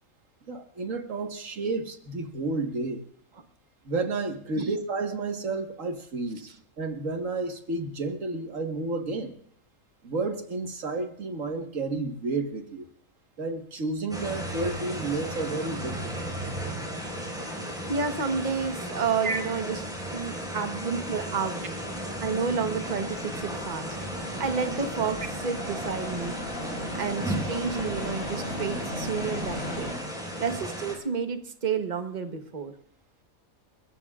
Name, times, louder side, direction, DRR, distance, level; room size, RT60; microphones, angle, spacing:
voice 1, 0.5-3.0 3.9-6.5 6.8-9.3 10.0-12.9 13.4-16.4 19.2-19.4, right 3 dB, 65° right, 4 dB, 1.9 m, -31 dB
sound 1, 14.1-31.0, right 1 dB, 5° right, 4.8 m, -35 dB
voice 2, 17.9-19.8 20.1-21.8 22.2-24.0 24.4-26.4 27.0-29.9 30.4-32.7, right 5 dB, 35° right, 6 dB, 1.2 m, -30 dB
sound 2, 21.6-29.9, equal, 70° left, 5.2 m, -37 dB
29.0 x 14.5 x 2.4 m, 0.64 s
omnidirectional pair, 1.4 m